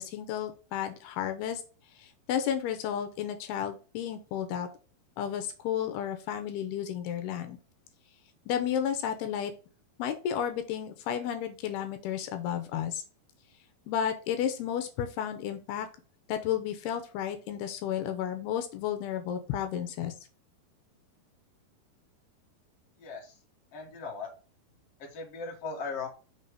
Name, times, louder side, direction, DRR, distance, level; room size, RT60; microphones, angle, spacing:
voice 1, 0.0-1.6 2.0-4.7 5.2-7.6 8.5-9.5 10.0-13.0 13.9-15.9 16.3-20.1, left 9 dB, 85° left, 7 dB, 2.8 m, -32 dB
voice 2, 23.0-23.4 23.7-24.3 25.0-26.1, left 4 dB, 45° left, 0 dB, 2.5 m, -38 dB
6.2 x 4.2 x 4.8 m, 0.35 s
omnidirectional pair, 4.6 m